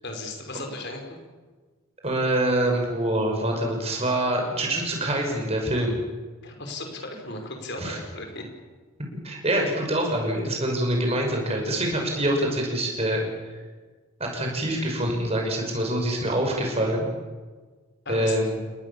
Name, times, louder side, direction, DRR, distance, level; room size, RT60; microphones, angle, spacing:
voice 1, 0.0-1.2 6.4-8.4 18.1-18.4, left 2 dB, 50° left, 3 dB, 5.3 m, -36 dB
voice 2, 2.0-6.0 7.8-8.0 9.2-13.3 14.2-17.1 18.1-18.5, right 1 dB, 30° right, 1 dB, 6.2 m, -25 dB
30.0 x 20.0 x 7.2 m, 1.4 s
head